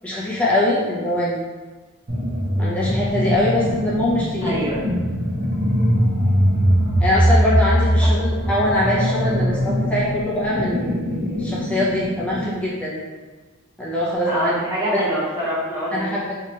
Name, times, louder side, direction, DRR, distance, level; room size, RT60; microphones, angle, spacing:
voice 1, 0.0-1.4 2.6-4.6 7.0-10.9 11.4-13.0 13.8-14.5 14.9-15.0 15.9-16.3, left 1 dB, 5° left, -7 dB, 0.5 m, -22 dB
sound 1, 2.1-12.6, equal, 50° right, 0.7 m, -21 dB
voice 2, 4.4-4.8 8.0-8.1 14.3-16.1, equal, 15° right, -9 dB, 0.9 m, -24 dB
2.8 x 2.4 x 4.2 m, 1.3 s
head